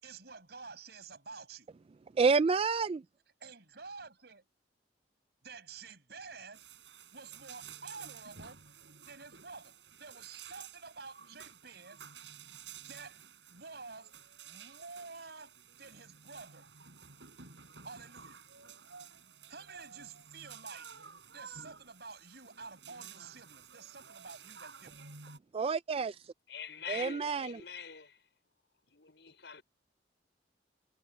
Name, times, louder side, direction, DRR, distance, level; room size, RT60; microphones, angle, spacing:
voice 1, 0.0-1.7 3.4-4.4 5.4-6.6 7.1-8.6 9.1-12.0 12.9-14.2 14.4-16.7 17.8-18.4 19.5-20.9 21.3-24.9, right 4 dB, 65° right, 5.9 m, -49 dB
voice 2, 2.2-3.0 25.5-26.2 26.9-27.5, right 4 dB, 35° right, 0.3 m, -28 dB
sound 1, 6.5-25.4, right 7 dB, 90° right, 7.7 m, -52 dB
voice 3, 26.5-28.2 28.9-29.6, left 7 dB, 75° left, 5.5 m, -44 dB
head